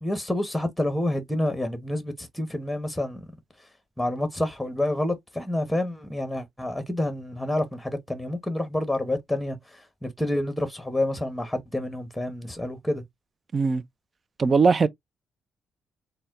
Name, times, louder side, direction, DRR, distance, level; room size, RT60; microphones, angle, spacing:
voice 1, 0.0-3.2 4.0-13.0, left 1 dB, 5° left, 1.1 m, -28 dB
voice 2, 13.5-13.8 14.4-14.9, right 4 dB, 35° right, 0.5 m, -20 dB
4.1 x 2.2 x 3.7 m
cardioid pair, 90°, 0 cm